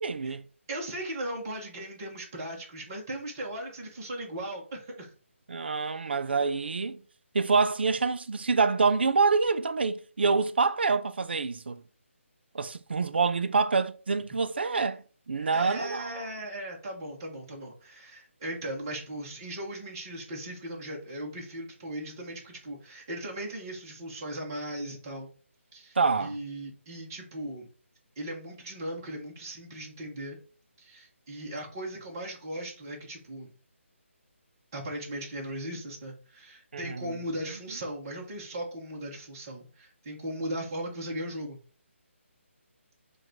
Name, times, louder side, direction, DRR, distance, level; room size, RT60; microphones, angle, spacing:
voice 1, 0.0-0.4 5.5-7.0 7.3-11.8 12.5-16.1 26.0-26.4 36.7-37.1, right 4 dB, 50° right, 0.3 m, -26 dB
voice 2, 0.7-5.1 15.3-25.3 25.7-27.7 28.2-30.4 30.8-33.5 34.7-41.6, right 1 dB, 15° right, 0.7 m, -38 dB
4.6 x 2.3 x 3.8 m
hypercardioid pair, 175°, 7 cm